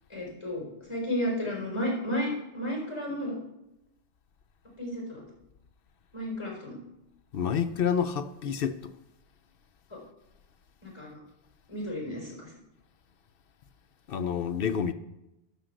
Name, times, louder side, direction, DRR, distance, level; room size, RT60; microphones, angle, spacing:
voice 1, 0.1-0.6 0.9-2.3 2.5-3.4 4.8-5.2 6.1-6.8 9.9-10.0 10.8-11.2 11.7-12.5, equal, 25° left, 4.4 m, -32 dB
voice 2, 7.3-8.9 14.1-14.9, left 7 dB, 60° left, 0.8 m, -28 dB
12.0 x 5.0 x 6.5 m
omnidirectional pair, 1.1 m